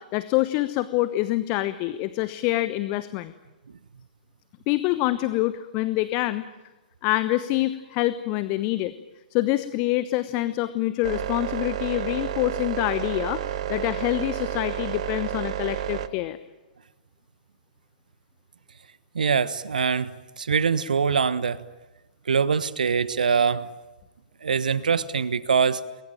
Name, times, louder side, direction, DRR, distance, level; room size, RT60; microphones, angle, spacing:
voice 1, 0.0-3.3 4.7-6.4 7.0-8.9 9.3-16.4, left 16 dB, 30° left, 13 dB, 1.0 m, -26 dB
sound 1, 11.0-16.1, right 11 dB, 45° right, 1.3 m, -30 dB
voice 2, 19.1-20.1 20.4-21.6 22.3-23.7 24.4-25.8, right 6 dB, 65° right, 16 dB, 1.2 m, -23 dB
28.5 x 22.0 x 9.1 m, 1.1 s
figure-of-eight pair, 115°, 5 cm